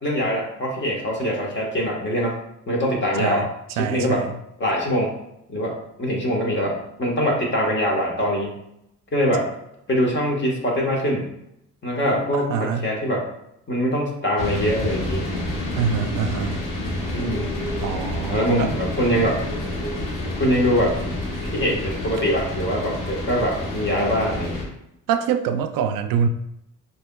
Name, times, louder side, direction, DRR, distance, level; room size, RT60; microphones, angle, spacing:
voice 1, 0.0-2.4 2.7-3.4 3.7-4.2 4.6-5.1 5.5-8.6 9.1-9.5 9.9-11.3 11.8-13.3 13.7-15.2 17.1-17.5 18.3-19.4 20.3-21.0 21.5-24.6, equal, 35° left, -2 dB, 1.4 m, -23 dB
voice 2, 3.8-4.3 12.5-12.9 15.8-16.6 17.8-18.7 25.1-26.3, right 7 dB, 80° right, 8 dB, 0.5 m, -24 dB
sound 1, 14.4-24.6, left 1 dB, 75° left, 1.3 m, -28 dB
6.2 x 2.9 x 2.3 m, 0.80 s
cardioid pair, 95°, 33 cm